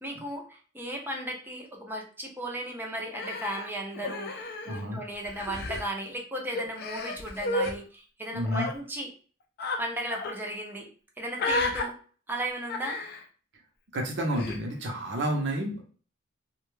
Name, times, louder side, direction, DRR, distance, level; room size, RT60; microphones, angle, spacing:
voice 1, 0.0-9.1 9.8-10.9 11.2-11.9 12.3-13.0, right 1 dB, 10° right, 1 dB, 0.5 m, -36 dB
Human voice, 3.1-5.0 5.2-5.8 6.5-7.7 8.4-8.7 9.6-9.8 10.1-10.4 11.4-11.8 12.7-13.2 14.3-14.6, left 2 dB, 50° left, 0.4 m, -32 dB
voice 2, 4.7-5.0 8.3-8.7 13.9-15.8, right 1 dB, 60° right, 1 dB, 0.6 m, -30 dB
2.2 x 2.1 x 3.1 m, 0.40 s
head